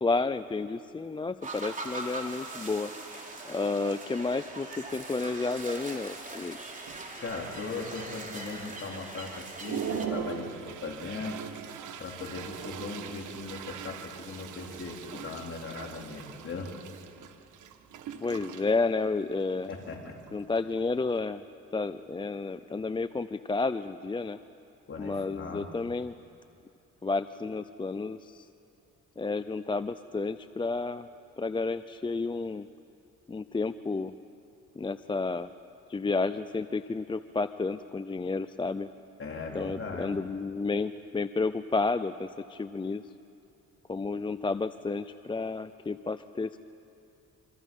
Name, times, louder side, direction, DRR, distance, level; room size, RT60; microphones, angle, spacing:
voice 1, 0.0-6.6 18.2-19.7 20.3-21.4 21.7-24.4 25.0-26.1 27.0-28.5 29.2-31.1 31.4-32.7 33.3-34.1 34.8-35.5 35.9-38.9 39.5-43.0 43.9-46.6, left 3 dB, 15° left, 12 dB, 0.5 m, -31 dB
sound 1, 1.4-10.1, right 2 dB, 25° right, 3.6 m, -41 dB
Toilet flush, 4.3-4.4 4.9-5.1 5.4-6.0 6.5-6.6 6.9-7.6 8.1-8.2 8.7-8.8 9.3-21.2, right 7 dB, 80° right, 1.6 m, -41 dB
voice 2, 7.2-11.4 12.0-16.7 19.7-20.2 24.9-25.7 39.2-40.1, left 4 dB, 45° left, 0 dB, 3.8 m, -39 dB
27.0 x 25.0 x 5.5 m, 2.8 s
cardioid pair, 90°, 30 cm